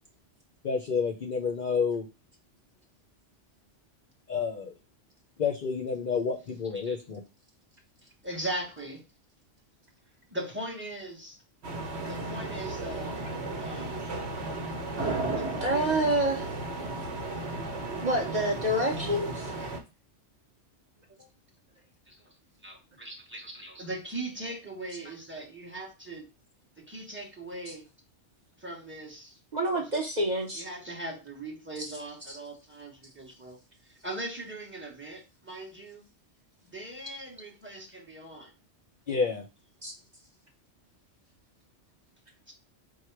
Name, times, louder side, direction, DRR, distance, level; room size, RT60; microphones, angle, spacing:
voice 1, 0.6-2.0 4.3-4.7 5.4-7.2 39.1-39.4, left 5 dB, 55° left, 2 dB, 0.6 m, -29 dB
voice 2, 8.2-9.0 10.3-11.4 12.1-13.2 13.6-14.0 15.3-16.0 22.1-22.3 22.6-26.2 26.8-27.9 28.6-29.4 29.7-29.9 30.5-33.6 33.8-36.0 36.7-38.5 42.5-42.6, right 1 dB, 10° right, 1 dB, 0.9 m, -40 dB
sound 1, 11.6-19.8, right 2 dB, 65° right, 1.1 m, -34 dB
voice 3, 15.6-16.5 18.0-19.7 27.7-27.8 29.5-30.6 31.8-31.9 32.3-32.4 39.8-39.9, right 1 dB, 40° right, 0 dB, 0.7 m, -28 dB
4.7 x 2.1 x 4.4 m, 0.29 s
omnidirectional pair, 1.3 m